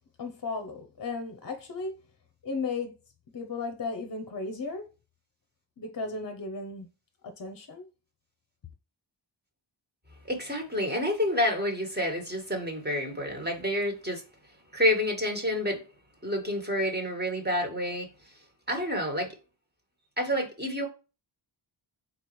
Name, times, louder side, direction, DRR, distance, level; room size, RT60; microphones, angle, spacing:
voice 1, 0.2-2.0 2.4-2.9 3.3-4.9 5.8-6.9 7.2-7.9, left 4 dB, 45° left, 0.8 m, -35 dB
voice 2, 10.2-14.2 14.7-15.9 16.2-18.1 18.7-19.3 20.2-20.9, left 1 dB, 20° right, 1.5 m, -28 dB
4.3 x 4.0 x 3.1 m
wide cardioid pair, 105°, 47 cm